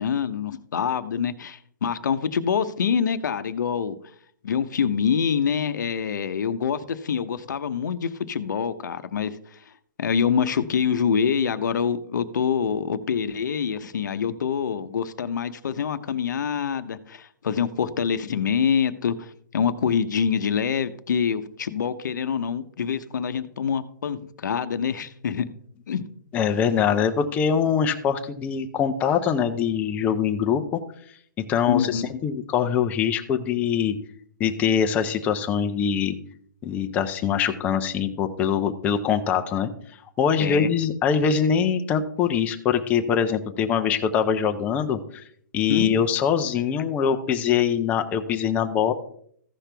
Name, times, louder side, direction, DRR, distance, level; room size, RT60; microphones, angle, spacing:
voice 1, 0.0-4.0 4.4-9.3 10.0-25.5 25.9-26.0 31.7-32.0 40.4-40.7 45.7-45.9, left 7 dB, 70° left, 11 dB, 0.8 m, -25 dB
voice 2, 26.3-30.8 31.5-34.0 34.4-36.2 36.6-39.7 40.2-45.2 45.5-48.9, left 7 dB, 15° left, 7 dB, 0.6 m, -23 dB
15.0 x 5.9 x 3.4 m, 0.63 s
hypercardioid pair, 155°, 10 cm